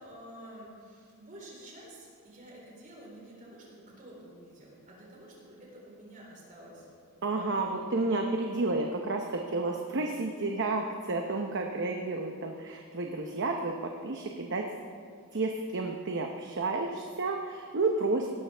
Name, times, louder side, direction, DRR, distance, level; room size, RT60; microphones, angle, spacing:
voice 1, 0.0-6.9 7.1-7.6 11.3-11.4, right 1 dB, 40° right, -4 dB, 4.0 m, -50 dB
voice 2, 7.2-14.7 15.3-18.3, right 3 dB, 55° right, 2 dB, 0.8 m, -31 dB
17.0 x 12.5 x 3.4 m, 2.2 s
head